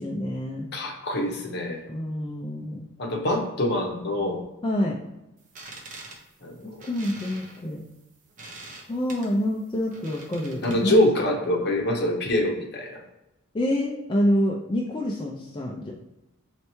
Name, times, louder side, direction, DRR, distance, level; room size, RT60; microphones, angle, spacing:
voice 1, 0.0-0.7 1.9-2.9 4.6-5.0 6.6-7.8 8.9-11.1 13.5-15.9, left 1 dB, 20° left, -3 dB, 0.3 m, -27 dB
voice 2, 0.7-1.9 3.0-4.4 6.4-6.9 10.6-13.0, left 1 dB, 50° left, 0 dB, 0.8 m, -25 dB
sound 1, 5.4-11.0, right 2 dB, 35° right, 0.7 m, -45 dB
4.4 x 3.2 x 3.0 m, 0.97 s
head